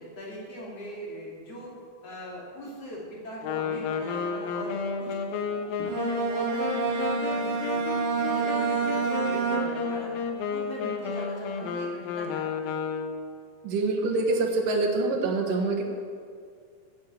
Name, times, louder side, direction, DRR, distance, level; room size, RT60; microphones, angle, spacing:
voice 1, 0.0-1.7 2.0-5.2 5.5-7.8 8.1-10.1 10.5-12.5, equal, 50° left, -4 dB, 3.9 m, -40 dB
Wind instrument woodwind instrument, 3.4-13.3, left 5 dB, 65° left, 2.0 m, -32 dB
Bowed string instrument, 5.8-10.1, right 5 dB, 65° right, 1.2 m, -28 dB
voice 2, 13.6-15.8, right 3 dB, 80° right, 0 dB, 3.2 m, -25 dB
14.5 x 7.5 x 7.7 m, 2.2 s
omnidirectional pair, 3.8 m